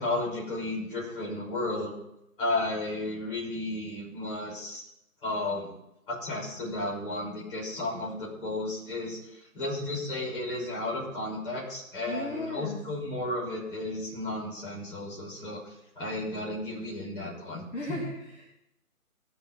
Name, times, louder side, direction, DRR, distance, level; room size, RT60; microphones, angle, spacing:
voice 1, 0.0-2.0 2.4-4.8 5.2-5.7 6.1-18.0, left 2 dB, 35° left, -4 dB, 6.1 m, -33 dB
voice 2, 12.1-12.8 17.7-18.5, left 1 dB, 55° left, -2 dB, 2.6 m, -36 dB
18.5 x 7.1 x 5.2 m, 0.85 s
figure-of-eight pair, 145°, 44 cm